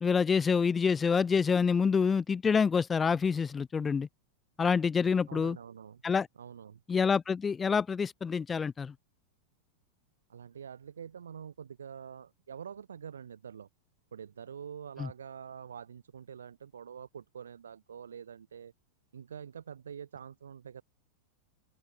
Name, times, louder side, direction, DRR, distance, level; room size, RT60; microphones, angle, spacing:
voice 1, 0.0-4.1 4.6-5.6 6.0-6.3 6.9-8.9 15.0-15.1, left 6 dB, 15° left, 0.4 m, -27 dB
voice 2, 5.3-6.0 6.4-6.8 10.3-13.7 14.1-18.7 19.1-20.8, right 7 dB, 70° right, 0.9 m, -46 dB
open air
figure-of-eight pair, 90°, 0 cm